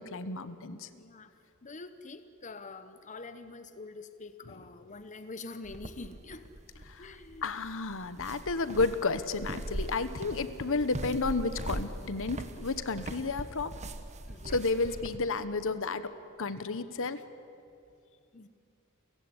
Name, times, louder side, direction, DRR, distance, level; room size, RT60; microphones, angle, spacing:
voice 1, 0.0-0.9 6.9-7.1 7.4-13.7 14.5-16.1 16.4-17.2, left 3 dB, 65° left, 13 dB, 1.1 m, -32 dB
voice 2, 0.9-1.3 1.6-6.5 7.0-7.4 14.2-14.8 18.3-18.5, left 3 dB, 35° left, 10 dB, 0.9 m, -46 dB
sound 1, 5.6-15.2, right 1 dB, 30° right, 1.2 m, -41 dB
29.5 x 16.0 x 9.9 m, 2.5 s
head